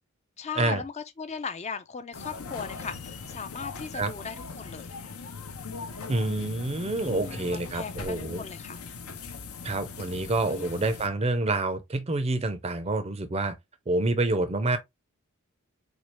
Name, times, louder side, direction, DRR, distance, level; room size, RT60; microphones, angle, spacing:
voice 1, 0.4-4.9 7.0-8.8 10.5-10.8, left 5 dB, 30° left, 0.4 m, -38 dB
sound 1, 2.1-11.1, left 4 dB, 75° left, 0.7 m, -40 dB
voice 2, 6.1-8.4 9.6-13.6 13.9-14.8, right 2 dB, 25° right, 0.5 m, -27 dB
4.3 x 2.4 x 3.0 m
head